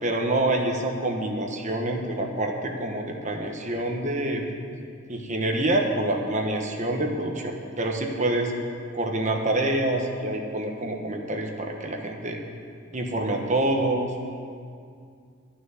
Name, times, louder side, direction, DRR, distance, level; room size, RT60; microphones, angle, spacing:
voice 1, 0.0-4.4 5.1-8.5 8.9-12.4 12.9-14.3, right 1 dB, 35° right, 2 dB, 1.2 m, -26 dB
12.0 x 6.2 x 9.6 m, 2.3 s
head